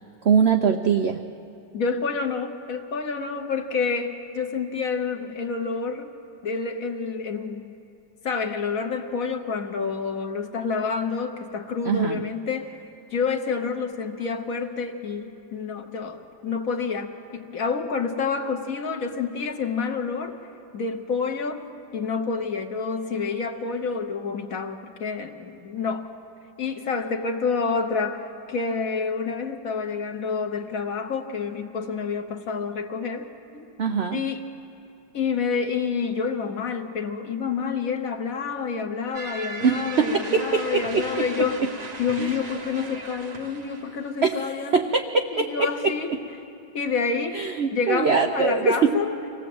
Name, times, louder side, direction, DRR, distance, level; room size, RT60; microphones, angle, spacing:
voice 1, 0.2-1.2 11.8-12.2 33.8-34.2 39.6-41.0 42.2-42.3 44.2-45.9 47.3-48.9, right 5 dB, 75° right, 5 dB, 0.6 m, -22 dB
voice 2, 1.7-6.1 6.4-7.7 8.2-12.8 13.1-20.4 20.7-21.6 21.9-26.1 26.6-33.7 34.1-34.4 35.1-41.6 42.0-44.8 45.3-46.1 46.7-47.4 47.7-49.1, left 5 dB, 55° left, 6 dB, 1.3 m, -28 dB
sound 1, 39.1-44.2, right 3 dB, 30° right, 0.8 m, -37 dB
25.0 x 17.5 x 7.8 m, 2.7 s
omnidirectional pair, 2.0 m